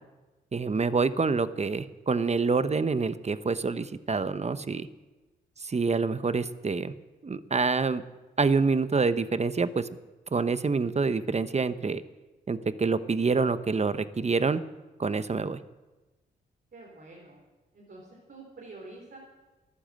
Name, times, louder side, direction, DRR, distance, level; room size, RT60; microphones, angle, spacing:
voice 1, 0.5-4.9 5.6-6.9 7.2-8.0 8.4-9.9 10.3-12.0 12.5-14.6 15.0-15.6, right 4 dB, 35° right, 13 dB, 0.9 m, -26 dB
voice 2, 16.7-17.4 17.7-19.2, right 2 dB, 60° right, -3 dB, 4.1 m, -47 dB
14.0 x 11.5 x 7.7 m, 1.2 s
supercardioid pair, 50°, 19 cm